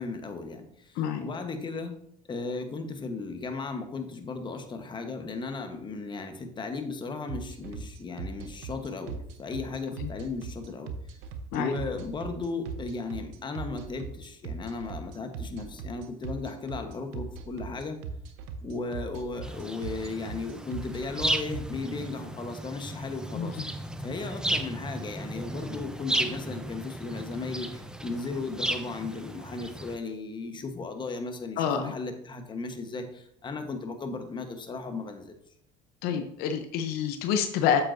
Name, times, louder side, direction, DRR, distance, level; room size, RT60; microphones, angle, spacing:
voice 1, 0.0-1.9 2.3-10.9 11.5-18.0 18.6-35.4, left 3 dB, 30° left, 6 dB, 1.2 m, -36 dB
sound 1, 7.3-21.6, right 5 dB, 85° right, 0.9 m, -38 dB
sound 2, 19.4-30.0, right 1 dB, 5° right, 0.6 m, -34 dB
voice 2, 31.6-31.9 36.0-37.8, left 8 dB, 75° left, 7 dB, 0.8 m, -27 dB
8.4 x 7.6 x 2.7 m, 0.71 s
supercardioid pair, 95°, 16 cm